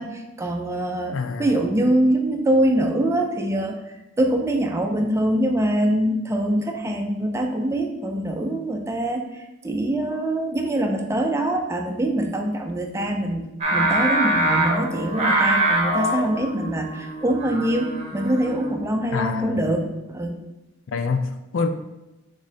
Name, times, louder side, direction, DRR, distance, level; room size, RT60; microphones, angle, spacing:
voice 1, 0.0-20.4, right 1 dB, 15° right, 3 dB, 0.4 m, -24 dB
voice 2, 1.1-1.6 19.1-19.7 20.9-21.7, left 4 dB, 70° left, 7 dB, 0.4 m, -26 dB
Singing, 13.6-18.9, right 1 dB, 35° right, 0.8 m, -24 dB
5.1 x 3.8 x 2.7 m, 0.96 s
head